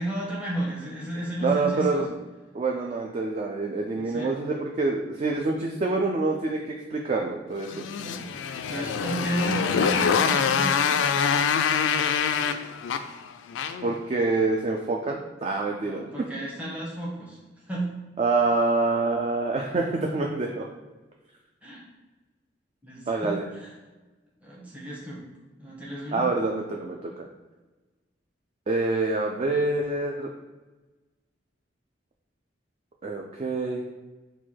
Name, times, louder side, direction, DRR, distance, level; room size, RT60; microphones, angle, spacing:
voice 1, 0.0-2.0 3.9-4.3 7.9-8.3 8.7-11.0 15.8-17.4 17.7-17.9 21.6-21.9 22.8-23.7 24.4-25.2 25.6-26.2, right 1 dB, 10° right, -6 dB, 0.9 m, -33 dB
voice 2, 1.4-2.0 2.5-7.9 13.8-16.1 18.2-20.7 23.1-23.5 26.1-27.3 28.7-30.3 33.0-33.8, right 3 dB, 35° right, 1 dB, 0.3 m, -26 dB
Motorcycle, 7.6-14.0, left 7 dB, 85° left, 0.3 m, -25 dB
4.4 x 2.2 x 4.4 m, 1.2 s
head